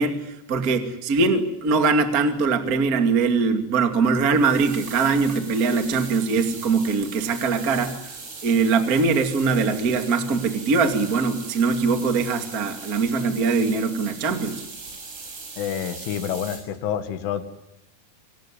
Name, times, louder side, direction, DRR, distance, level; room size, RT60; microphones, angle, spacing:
voice 1, 0.0-8.0 8.4-14.6, right 4 dB, 40° right, 6 dB, 1.3 m, -22 dB
sound 1, 4.1-16.6, right 4 dB, 75° right, 9.3 m, -40 dB
voice 2, 15.6-17.4, left 9 dB, 75° left, 10 dB, 4.0 m, -28 dB
26.5 x 19.0 x 9.9 m, 0.85 s
omnidirectional pair, 5.8 m